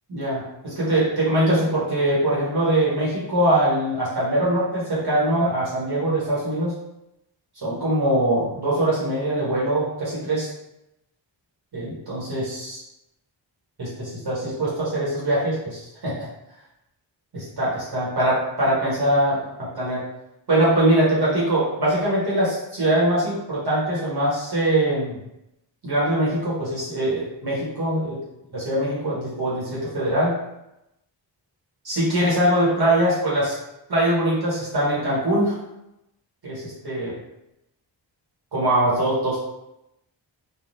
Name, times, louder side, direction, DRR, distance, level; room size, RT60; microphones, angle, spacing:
voice 1, 0.1-6.7 7.6-10.5 11.7-12.8 13.8-16.3 17.3-20.0 20.5-25.2 25.8-28.2 28.5-30.3 31.8-33.5 33.9-35.6 36.4-37.1 38.5-39.4, right 1 dB, 55° right, -7 dB, 1.2 m, -22 dB
3.2 x 2.4 x 2.6 m, 0.87 s
wide cardioid pair, 100°, 46 cm